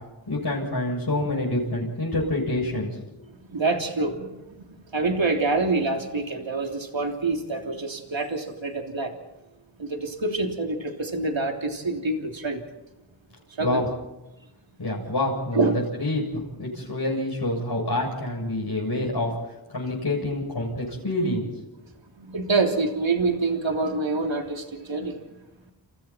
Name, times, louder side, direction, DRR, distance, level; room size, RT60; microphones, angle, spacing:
voice 1, 0.3-3.0 13.6-13.9 14.8-15.7 16.0-19.3 19.7-21.5, left 1 dB, 60° left, -4 dB, 7.6 m, -27 dB
voice 2, 3.5-4.5 4.9-9.1 9.8-12.6 13.5-13.8 15.5-15.8 22.2-25.2, right 3 dB, 85° right, 2 dB, 3.4 m, -26 dB
30.0 x 29.5 x 4.5 m, 0.98 s
wide cardioid pair, 55°, 45 cm